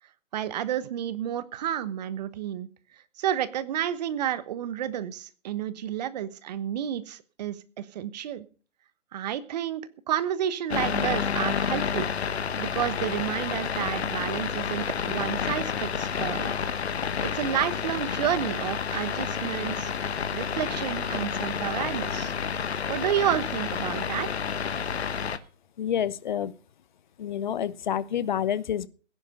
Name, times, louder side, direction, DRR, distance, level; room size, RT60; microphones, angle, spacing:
voice 1, 0.3-2.7 3.2-8.4 9.1-12.1 12.6-16.5 17.2-22.3 22.9-24.3, right 10 dB, 35° right, 1.2 m, -30 dB
sound 1, 10.7-25.4, left 7 dB, 60° left, 1.3 m, -30 dB
voice 2, 25.8-26.5 27.2-28.9, left 9 dB, 40° left, 0.9 m, -28 dB
17.0 x 10.5 x 5.6 m
figure-of-eight pair, 140°, 37 cm